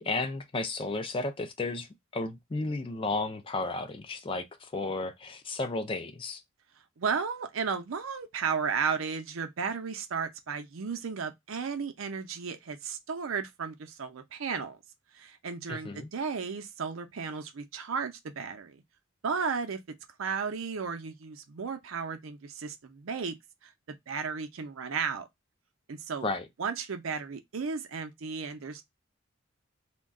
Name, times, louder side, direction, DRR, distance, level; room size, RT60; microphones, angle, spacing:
voice 1, 0.0-6.4 15.7-16.1 26.2-26.5, left 3 dB, 25° left, 0.4 m, -33 dB
voice 2, 7.0-14.8 15.1-18.8 19.2-19.8 20.2-23.3 23.6-25.3 25.9-26.3 26.6-28.8, right 5 dB, 85° right, 0.6 m, -34 dB
2.3 x 2.2 x 3.5 m
head